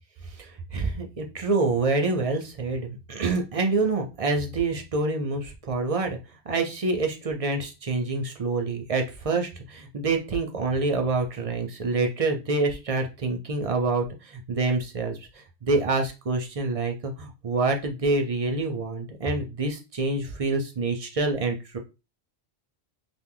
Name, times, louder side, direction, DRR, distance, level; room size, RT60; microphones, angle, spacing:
voice 1, 0.4-6.2 6.5-21.8, right 3 dB, 45° right, 4 dB, 0.5 m, -27 dB
2.9 x 2.2 x 3.7 m, 0.28 s
omnidirectional pair, 1.1 m